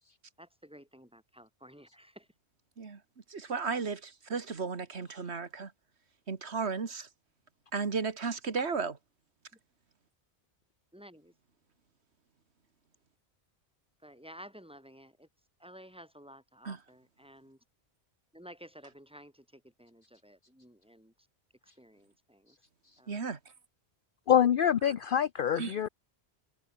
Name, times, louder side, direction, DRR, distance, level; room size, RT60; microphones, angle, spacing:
voice 1, 0.4-2.3 10.9-11.3 14.0-15.3 15.6-17.6 18.3-21.1 21.8-22.6 23.0-23.2, equal, 5° right, 7.3 m, -53 dB
voice 2, 3.3-5.7 6.3-7.1 7.7-9.0 16.6-16.8 23.1-23.4 25.5-25.8, right 5 dB, 75° right, 2.1 m, -34 dB
voice 3, 24.3-25.9, left 9 dB, 55° left, 0.8 m, -25 dB
omnidirectional pair, 1.1 m